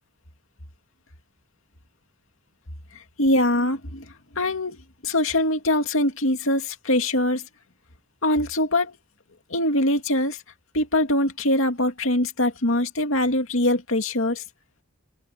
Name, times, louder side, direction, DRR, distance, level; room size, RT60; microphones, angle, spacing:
voice 1, 3.2-4.1 4.4-4.8 5.0-7.4 8.2-9.0 9.5-10.4 10.7-14.4, left 1 dB, 70° left, 2.5 m, -23 dB
open air
head